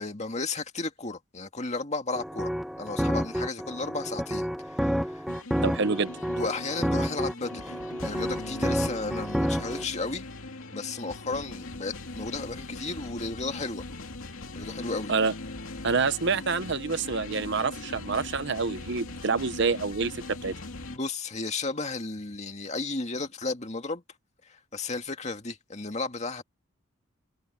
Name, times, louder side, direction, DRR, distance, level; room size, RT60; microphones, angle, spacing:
voice 1, 0.0-2.5 2.8-5.4 6.4-10.2 10.7-13.8 14.5-15.1 20.9-24.0 24.4-26.4, left 3 dB, 35° left, 2.1 m, -34 dB
sound 1, 2.1-9.8, equal, ahead, 1.2 m, -30 dB
sound 2, 5.3-21.0, left 2 dB, 85° left, 2.5 m, -40 dB
voice 2, 5.6-6.1 15.1-15.3 15.8-20.5, right 4 dB, 55° right, 0.9 m, -27 dB
head